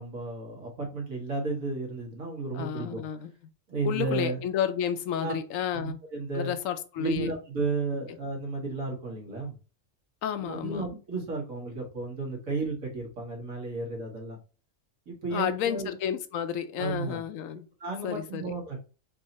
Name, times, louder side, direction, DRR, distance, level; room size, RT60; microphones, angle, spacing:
voice 1, 0.0-3.0 3.7-4.4 5.2-5.3 5.7-6.5 7.0-9.5 10.4-14.4 15.1-15.9 16.8-17.2 17.8-18.8, right 3 dB, 90° right, 2.0 m, -33 dB
voice 2, 2.5-3.3 3.8-6.0 6.3-7.3 10.2-10.8 15.3-17.7 18.0-18.5, left 9 dB, 80° left, 1.0 m, -31 dB
4.6 x 2.7 x 4.1 m
omnidirectional pair, 1.4 m